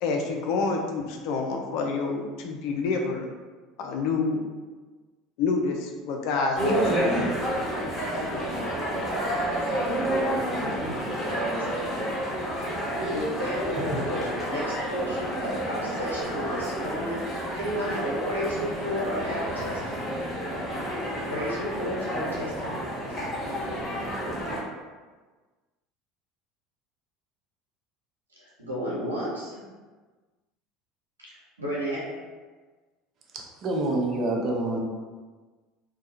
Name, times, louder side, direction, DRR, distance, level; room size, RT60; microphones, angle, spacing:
voice 1, 0.0-3.3 3.8-4.4 5.4-8.7 9.6-9.8, left 4 dB, 60° left, 2 dB, 0.4 m, -29 dB
sound 1, 6.5-24.6, equal, 5° right, 1.3 m, -30 dB
voice 2, 10.3-11.9 13.1-20.2 21.2-23.0 28.4-29.7 31.6-32.1, equal, 90° right, -6 dB, 0.7 m, -33 dB
voice 3, 33.3-34.8, right 2 dB, 45° right, 0 dB, 0.5 m, -27 dB
2.3 x 2.1 x 2.7 m, 1.3 s
figure-of-eight pair, 70°, 0 cm